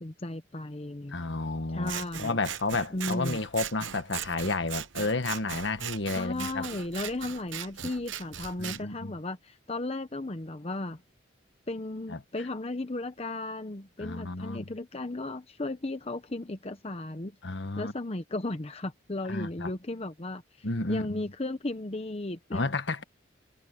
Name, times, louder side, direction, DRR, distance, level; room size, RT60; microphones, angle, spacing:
voice 1, 0.0-1.3 1.7-2.4 2.9-3.4 6.1-11.0 11.7-17.4 17.8-22.7, left 2 dB, 30° left, 0.8 m, -35 dB
voice 2, 1.1-1.9 2.2-6.6 8.6-9.1 12.1-12.2 14.0-14.7 17.4-17.9 19.3-19.7 20.6-21.2 22.5-23.0, left 3 dB, 65° left, 1.5 m, -31 dB
Scissors, 1.8-8.8, right 9 dB, 75° right, 0.9 m, -39 dB
head